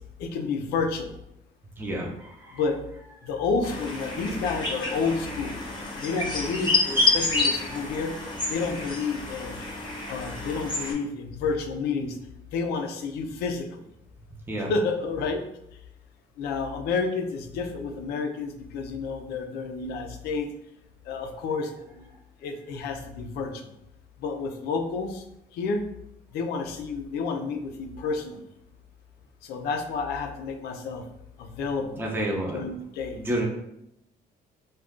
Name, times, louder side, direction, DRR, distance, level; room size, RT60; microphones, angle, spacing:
voice 1, 0.2-1.1 2.5-2.8 3.2-5.6 6.0-8.1 8.5-9.6 10.1-12.2 12.5-13.8 14.6-15.4 16.4-20.5 21.1-21.7 22.0-22.1 22.4-23.5 24.2-25.2 25.5-25.8 26.3-28.4 29.4-31.0 31.4-32.0 32.5-33.2, left 4 dB, 80° left, 4 dB, 0.5 m, -30 dB
voice 2, 1.8-2.6 6.8-7.0 7.7-7.8 14.5-14.7 32.0-32.6 33.2-33.5, right 1 dB, 10° right, -1 dB, 0.6 m, -30 dB
sound 1, 3.6-10.9, left 3 dB, 30° left, 0.8 m, -28 dB
2.4 x 2.3 x 3.6 m, 0.80 s
cardioid pair, 90°, 16 cm